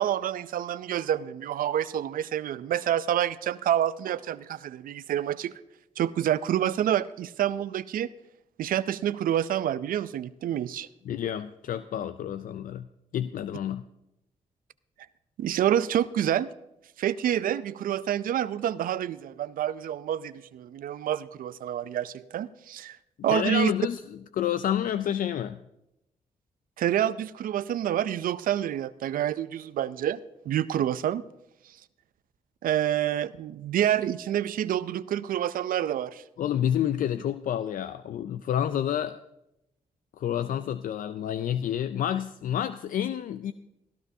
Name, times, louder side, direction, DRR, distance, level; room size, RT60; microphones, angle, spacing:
voice 1, 0.0-5.6 6.0-8.1 8.6-10.9 15.4-16.5 17.0-23.0 23.2-23.7 26.8-30.2 30.5-31.2 32.6-36.2, right 11 dB, 80° right, 16 dB, 0.4 m, -28 dB
voice 2, 11.0-12.9 13.1-13.8 23.3-25.6 36.4-39.2 40.2-43.5, left 10 dB, 70° left, 12 dB, 0.4 m, -29 dB
17.5 x 12.5 x 2.7 m, 0.86 s
supercardioid pair, 55°, 15 cm